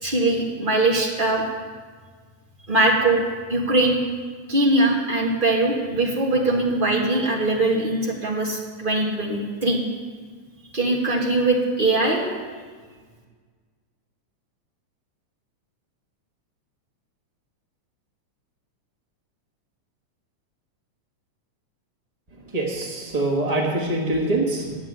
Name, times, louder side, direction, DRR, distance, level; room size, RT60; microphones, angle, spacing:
voice 1, 0.0-1.4 2.7-3.2 3.5-4.0 4.5-9.8 10.7-12.2, right 2 dB, 20° right, -2 dB, 1.5 m, -21 dB
voice 2, 22.5-24.8, right 2 dB, 55° right, -1 dB, 0.4 m, -24 dB
11.0 x 7.5 x 9.2 m, 1.5 s
omnidirectional pair, 3.4 m